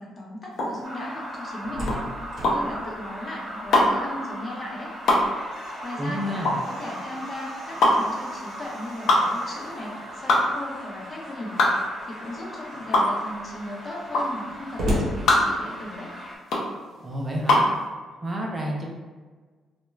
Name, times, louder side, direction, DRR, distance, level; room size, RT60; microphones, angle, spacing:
voice 1, 0.0-4.9 5.6-11.6 12.0-16.1, left 1 dB, 35° left, -3 dB, 0.7 m, -37 dB
sound 1, 0.5-17.8, left 1 dB, 70° left, 0.6 m, -23 dB
sound 2, 0.8-16.4, equal, 10° right, 1.1 m, -39 dB
Slam, 1.3-4.1 4.5-4.6 5.0-10.7 11.6-12.1 12.6-12.7 13.0-16.1, equal, 60° right, 0.8 m, -36 dB
voice 2, 6.0-6.6 17.0-17.8 18.2-18.9, equal, 25° right, -1 dB, 0.4 m, -30 dB
2.3 x 2.1 x 3.1 m, 1.4 s
cardioid pair, 90°, 0 cm